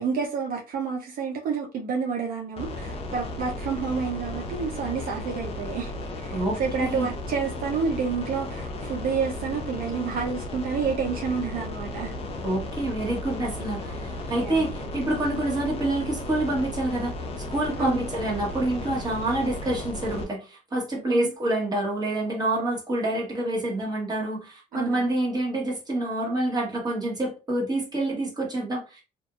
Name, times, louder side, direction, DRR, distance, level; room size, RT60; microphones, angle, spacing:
voice 1, 0.0-12.1 14.4-14.6 17.8-18.1 21.1-21.3 24.7-25.1, right 5 dB, 60° right, 0.5 m, -29 dB
sound 1, 2.6-20.2, left 2 dB, 35° left, 0.6 m, -35 dB
voice 2, 6.3-7.1 12.4-29.0, right 1 dB, 25° right, 1.2 m, -27 dB
2.6 x 2.5 x 2.4 m
cardioid pair, 110°, 17 cm